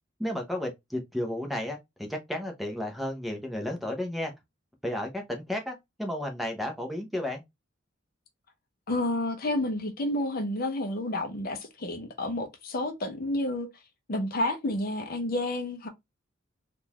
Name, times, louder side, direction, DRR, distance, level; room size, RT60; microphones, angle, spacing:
voice 1, 0.2-4.3 4.8-7.4, left 1 dB, ahead, 0.7 m, -33 dB
voice 2, 8.9-13.7 14.1-15.9, left 1 dB, 45° left, 0.6 m, -30 dB
3.7 x 2.4 x 2.8 m
head